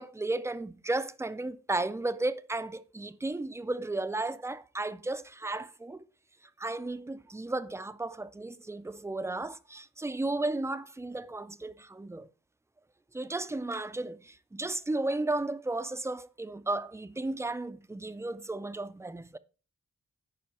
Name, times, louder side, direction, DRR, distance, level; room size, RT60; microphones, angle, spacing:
voice 1, 0.0-6.0 6.6-12.3 13.1-19.4, right 2 dB, 10° right, 0.3 m, -34 dB
10.5 x 5.0 x 4.2 m
wide cardioid pair, 170°, 31 cm